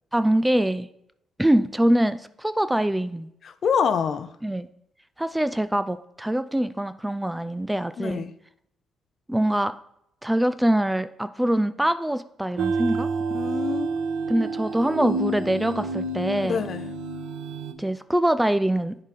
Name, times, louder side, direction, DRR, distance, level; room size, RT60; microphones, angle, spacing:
voice 1, 0.1-0.9 1.4-3.3 4.4-4.7 5.2-8.3 9.3-9.8 10.2-13.1 14.3-16.6 17.8-19.0, right 1 dB, 5° right, 0.3 m, -24 dB
voice 2, 3.4-4.3 8.0-8.3 13.3-13.9 16.4-16.9, left 6 dB, 55° left, 0.5 m, -26 dB
sound 1, 12.6-17.7, right 3 dB, 85° right, 0.5 m, -29 dB
10.0 x 3.9 x 4.1 m
cardioid pair, 90°, 0 cm